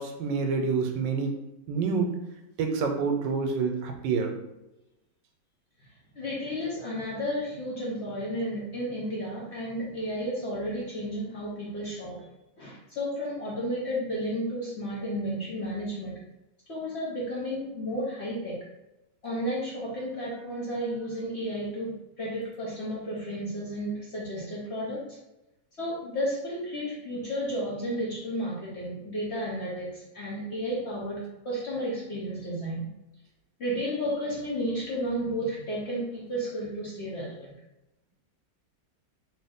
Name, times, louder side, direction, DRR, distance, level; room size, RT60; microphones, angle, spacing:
voice 1, 0.0-1.4 1.7-2.2 2.6-4.4, right 5 dB, 80° right, 4 dB, 1.2 m, -27 dB
voice 2, 6.2-12.2 12.6-16.1 16.7-18.6 19.2-25.0 25.8-32.9 33.6-37.5, equal, 50° left, -6 dB, 0.8 m, -32 dB
3.0 x 2.8 x 3.5 m, 0.95 s
omnidirectional pair, 1.9 m